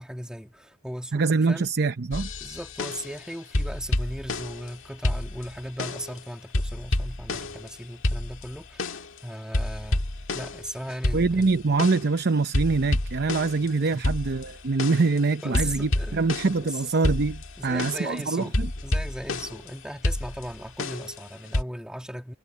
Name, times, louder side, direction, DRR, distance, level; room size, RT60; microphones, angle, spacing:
voice 1, 0.0-1.7 2.4-10.0 10.3-11.6 13.6-14.0 15.4-16.2 16.6-16.8 17.6-18.5 18.8-22.3, equal, 5° right, 2.3 m, -37 dB
voice 2, 1.1-2.3 11.1-18.7, right 4 dB, 50° right, 0.7 m, -24 dB
sound 1, 2.1-3.2 3.5-4.7 5.0-6.2 6.5-7.7 8.0-9.2 9.5-12.2 12.5-16.7 17.0-19.7 20.0-21.6, left 1 dB, 65° left, 1.9 m, -29 dB
head